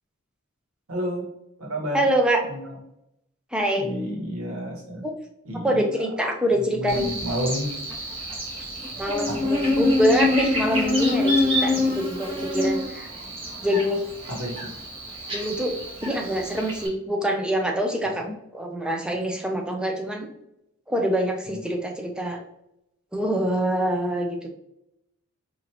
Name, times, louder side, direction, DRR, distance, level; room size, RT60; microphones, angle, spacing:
voice 1, 0.9-1.2 1.6-2.0 2.4-2.8 3.7-5.0 5.4-5.9 6.6-7.8 9.3-9.6 14.3-14.7 18.2-18.3 21.5-21.6, equal, 85° right, -1 dB, 1.2 m, -31 dB
voice 2, 1.9-2.4 3.5-3.9 5.0-5.1 5.6-7.1 9.0-13.1 13.6-14.0 15.3-15.7 16.0-18.3 18.5-20.3 20.9-22.4 23.1-24.5, equal, 5° right, 1 dB, 0.5 m, -25 dB
Buzz, 6.9-16.9, left 1 dB, 25° right, 0.9 m, -26 dB
4.4 x 2.6 x 2.8 m, 0.80 s
head